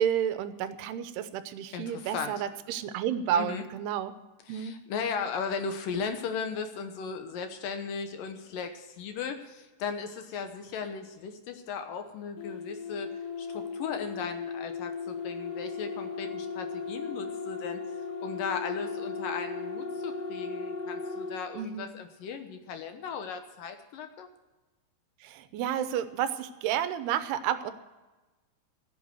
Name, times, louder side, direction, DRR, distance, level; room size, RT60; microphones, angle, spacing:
voice 1, 0.0-4.1 4.5-4.8 21.5-22.0 25.2-27.7, right 9 dB, 85° right, 12 dB, 2.8 m, -31 dB
voice 2, 1.7-2.4 3.3-3.7 4.5-13.1 13.4-24.3, left 6 dB, 70° left, 7 dB, 2.4 m, -37 dB
sound 1, 12.4-21.4, left 4 dB, 85° left, 3.5 m, -36 dB
15.5 x 8.3 x 7.9 m, 1.2 s
omnidirectional pair, 4.6 m